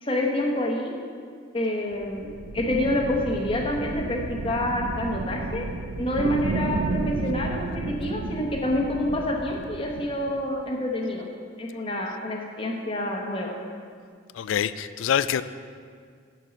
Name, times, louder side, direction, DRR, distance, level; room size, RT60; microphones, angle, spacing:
voice 1, 0.0-0.9 1.5-5.7 6.0-11.3 11.6-13.6, left 1 dB, 25° left, 0 dB, 1.0 m, -27 dB
sound 1, 1.9-10.4, right 3 dB, 60° right, 0.4 m, -32 dB
voice 2, 14.3-15.4, left 9 dB, 80° left, 14 dB, 0.3 m, -25 dB
11.5 x 4.6 x 5.2 m, 2.1 s
head